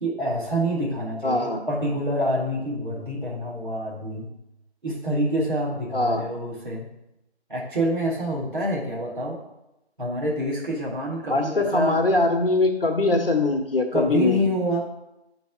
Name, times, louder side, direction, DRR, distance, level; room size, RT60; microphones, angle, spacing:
voice 1, 0.0-4.3 4.8-6.9 7.5-9.4 10.0-12.0 13.9-14.9, equal, 50° right, -3 dB, 2.0 m, -27 dB
voice 2, 1.2-1.6 5.9-6.3 11.3-14.4, left 2 dB, 55° left, 4 dB, 1.1 m, -22 dB
9.6 x 4.1 x 3.5 m, 0.89 s
figure-of-eight pair, 170°, 33 cm